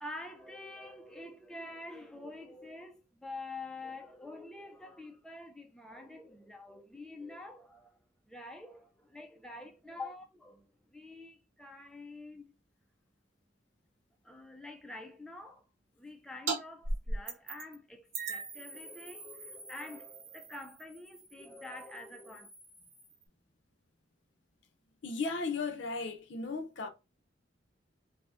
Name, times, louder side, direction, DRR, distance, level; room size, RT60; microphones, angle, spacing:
voice 1, 0.0-8.0 8.3-12.5 14.2-15.6 15.9-22.5, left 2 dB, 5° left, 0.4 m, -47 dB
sound 1, 16.5-16.6 16.8-17.7 18.1-23.2, right 3 dB, 85° right, 1.0 m, -40 dB
voice 2, 25.0-26.9, left 4 dB, 70° left, 0.6 m, -35 dB
4.1 x 2.1 x 2.5 m
head